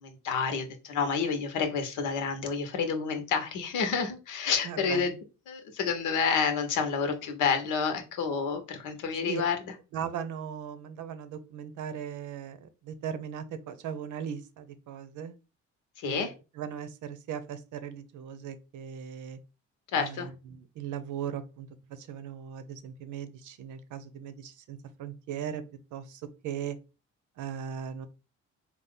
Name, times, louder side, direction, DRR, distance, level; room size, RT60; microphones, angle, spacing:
voice 1, 0.0-5.1 5.5-9.7 16.0-16.3 19.9-20.3, left 6 dB, 90° left, 6 dB, 1.0 m, -29 dB
voice 2, 4.6-5.2 9.2-9.4 9.9-15.4 16.1-16.3 16.6-19.4 19.9-25.6 25.9-26.8 27.4-28.1, right 8 dB, 80° right, 12 dB, 0.7 m, -38 dB
4.1 x 2.4 x 3.7 m, 0.30 s
cardioid pair, 90°, 30 cm